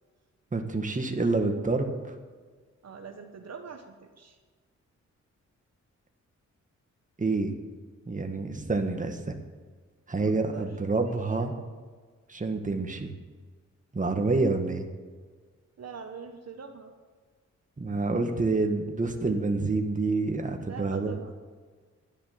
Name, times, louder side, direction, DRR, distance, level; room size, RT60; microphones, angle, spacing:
voice 1, 0.5-2.0 7.2-7.5 8.1-9.4 10.1-11.5 12.3-13.1 13.9-14.9 17.8-21.1, right 3 dB, 25° right, 4 dB, 1.8 m, -28 dB
voice 2, 2.8-4.4 10.2-11.5 15.8-16.9 20.6-21.3, right 5 dB, 60° right, 4 dB, 1.3 m, -43 dB
11.5 x 10.0 x 7.7 m, 1.5 s
cardioid pair, 85°, 30 cm